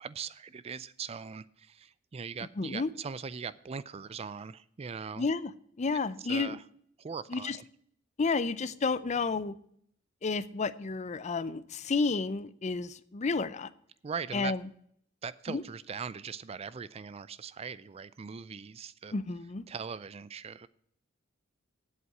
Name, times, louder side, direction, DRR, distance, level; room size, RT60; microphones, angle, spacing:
voice 1, 0.0-5.3 6.3-6.6 7.0-7.6 14.0-14.5 15.2-19.1 19.7-20.7, right 6 dB, 30° right, 18 dB, 0.4 m, -40 dB
voice 2, 2.6-2.9 5.2-5.5 5.8-6.6 7.3-7.6 8.2-9.5 10.2-13.7 14.3-14.6 15.5-15.6 19.1-19.6, left 4 dB, 35° left, 16 dB, 0.5 m, -31 dB
8.2 x 7.8 x 8.3 m, 0.66 s
head